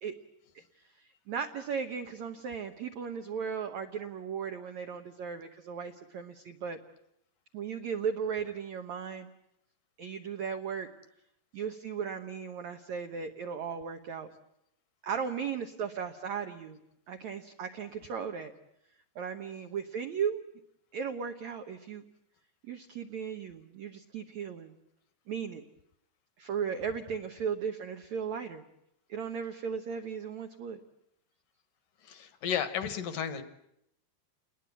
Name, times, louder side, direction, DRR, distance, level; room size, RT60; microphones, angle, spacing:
voice 1, 0.9-6.8 7.5-9.3 10.0-10.9 11.5-14.3 15.0-16.8 17.1-18.5 19.1-20.4 20.9-22.0 22.6-24.7 25.3-25.6 26.4-28.6 29.1-30.8, right 7 dB, 80° right, 6 dB, 1.6 m, -36 dB
voice 2, 32.0-33.4, left 8 dB, 65° left, 11 dB, 2.4 m, -33 dB
29.0 x 20.5 x 8.3 m, 0.78 s
omnidirectional pair, 4.9 m